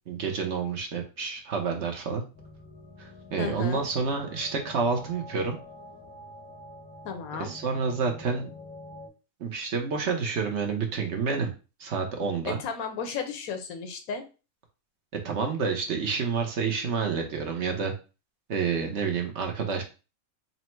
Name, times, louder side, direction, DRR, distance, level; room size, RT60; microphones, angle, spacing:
voice 1, 0.1-2.2 3.0-5.6 7.4-8.5 9.4-11.5 11.8-12.6 15.2-17.9 18.5-19.8, right 5 dB, 60° right, 3 dB, 1.0 m, -29 dB
sound 1, 2.3-9.1, left 1 dB, 10° left, 0.7 m, -46 dB
voice 2, 3.4-3.8 7.0-7.5 12.5-14.2, left 6 dB, 85° left, 6 dB, 1.2 m, -34 dB
4.1 x 2.0 x 4.4 m, 0.32 s
omnidirectional pair, 1.5 m